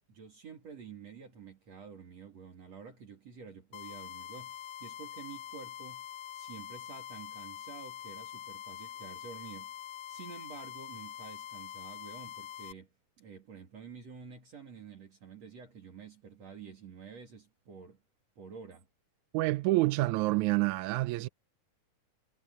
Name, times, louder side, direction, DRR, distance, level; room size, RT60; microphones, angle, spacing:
voice 1, 0.0-6.1 6.3-9.8 10.1-18.0 18.4-18.9, right 6 dB, 55° right, 3.6 m, -49 dB
sound 1, 3.7-12.7, left 11 dB, 80° left, 1.4 m, -45 dB
voice 2, 19.3-21.3, right 19 dB, 80° right, 1.9 m, -28 dB
omnidirectional pair, 3.6 m